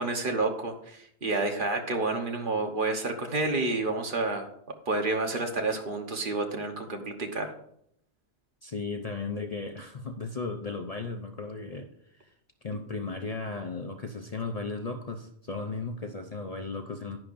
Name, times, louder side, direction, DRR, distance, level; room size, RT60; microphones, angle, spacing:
voice 1, 0.0-4.5 4.9-7.5, right 3 dB, 50° right, 4 dB, 1.3 m, -29 dB
voice 2, 8.6-12.3 12.6-17.2, left 3 dB, 40° left, 5 dB, 0.6 m, -36 dB
10.5 x 10.0 x 2.6 m, 0.70 s
omnidirectional pair, 1.1 m